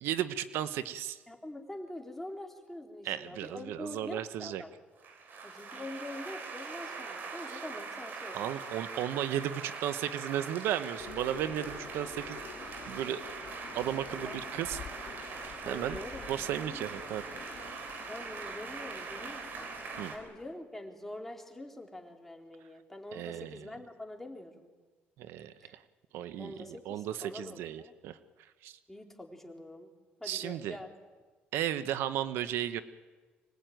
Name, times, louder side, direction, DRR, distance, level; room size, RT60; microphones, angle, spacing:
voice 1, 0.0-1.2 3.0-4.6 7.5-7.6 8.3-12.4 12.9-13.2 13.7-15.0 15.7-16.0 16.3-17.3 20.0-20.1 23.1-23.6 25.2-25.8 26.1-28.2 28.6-28.8 30.2-30.8 31.5-32.8, right 11 dB, 85° right, 12 dB, 1.0 m, -35 dB
voice 2, 1.3-4.7 5.4-8.5 14.1-14.4 15.6-16.9 18.1-19.7 20.1-24.7 25.6-25.7 26.4-27.9 28.9-29.9 30.2-30.9, left 1 dB, 5° left, 2 dB, 3.5 m, -45 dB
sound 1, 5.0-20.2, right 4 dB, 55° right, 4.5 m, -42 dB
sound 2, 11.0-20.5, left 8 dB, 60° left, 1.5 m, -49 dB
25.0 x 20.0 x 9.2 m, 1.4 s
cardioid pair, 115°, 4 cm